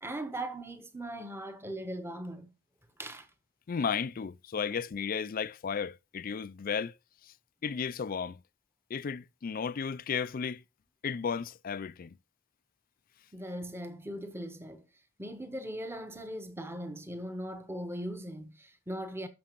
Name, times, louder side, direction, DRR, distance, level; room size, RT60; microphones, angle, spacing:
voice 1, 0.0-2.5 3.0-3.3 13.3-14.8 15.2-19.3, right 1 dB, 10° right, 1.0 m, -39 dB
voice 2, 3.7-6.9 7.6-8.4 8.9-10.6 11.0-12.1, left 6 dB, 40° left, 0.4 m, -34 dB
13.0 x 6.1 x 3.0 m
head